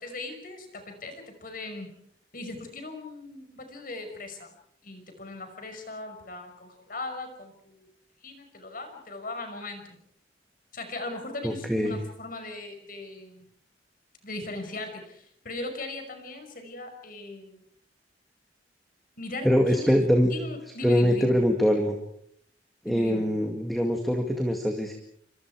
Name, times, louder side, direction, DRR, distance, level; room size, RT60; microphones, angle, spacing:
voice 1, 0.0-1.9 2.3-4.6 4.8-7.9 8.2-10.0 10.7-13.5 14.2-17.6 19.2-19.9 20.3-21.4 22.9-23.3, left 2 dB, 50° left, 6 dB, 5.6 m, -39 dB
voice 2, 11.4-12.0 19.4-20.3 20.8-22.0 22.8-24.9, equal, ahead, 3 dB, 2.2 m, -23 dB
28.5 x 25.5 x 4.8 m, 0.67 s
head